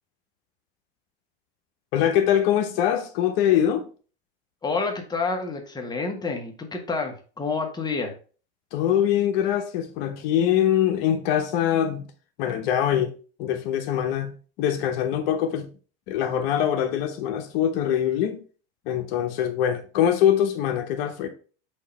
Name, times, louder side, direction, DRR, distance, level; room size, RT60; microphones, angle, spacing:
voice 1, 1.9-3.9 8.7-12.1 12.4-13.1 13.4-15.7 16.1-18.4 18.9-21.3, left 10 dB, 65° left, 1.0 m, -23 dB
voice 2, 4.6-8.1, left 4 dB, 10° left, 1.3 m, -28 dB
6.6 x 2.8 x 5.2 m
supercardioid pair, 115°, 32 cm